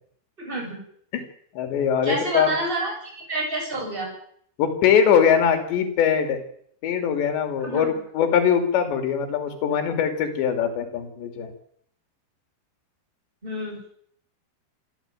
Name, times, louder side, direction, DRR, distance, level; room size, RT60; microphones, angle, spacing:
voice 1, 0.4-0.8 2.0-4.1 7.6-7.9 13.4-13.9, right 1 dB, 10° right, 0 dB, 7.5 m, -28 dB
voice 2, 1.6-2.5 4.6-6.4 6.8-11.5, left 7 dB, 80° left, 6 dB, 5.0 m, -22 dB
26.5 x 13.5 x 9.1 m, 0.65 s
omnidirectional pair, 5.0 m